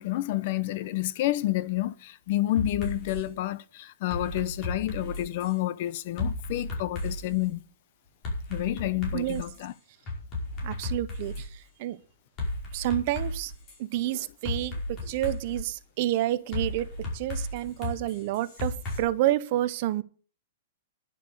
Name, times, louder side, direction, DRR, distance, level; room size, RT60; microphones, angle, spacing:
voice 1, 0.0-7.6 8.5-9.7, left 15 dB, 45° left, 0.7 m, -29 dB
sound 1, 2.6-3.2 4.1-5.5 6.2-7.4 8.2-9.6 10.1-11.5 12.4-13.8 14.4-15.6 16.5-19.0, left 2 dB, 25° left, 5.3 m, -34 dB
voice 2, 10.6-12.0 12.7-13.5 13.8-16.9 17.1-20.0, right 14 dB, 40° right, 0.9 m, -29 dB
11.0 x 7.3 x 8.0 m
hypercardioid pair, 165°, 0 cm